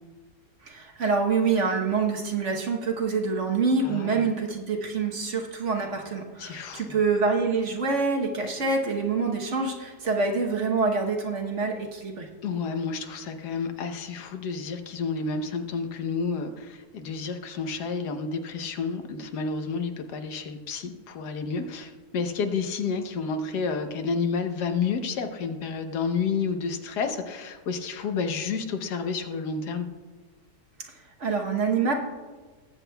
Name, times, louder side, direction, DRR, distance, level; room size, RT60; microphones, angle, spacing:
voice 1, 0.6-12.3 31.2-31.9, right 4 dB, 50° right, 1 dB, 1.2 m, -26 dB
voice 2, 3.8-4.3 6.4-7.0 12.4-29.9, left 5 dB, 75° left, 7 dB, 1.4 m, -30 dB
19.5 x 7.9 x 2.2 m, 1.4 s
omnidirectional pair, 1.8 m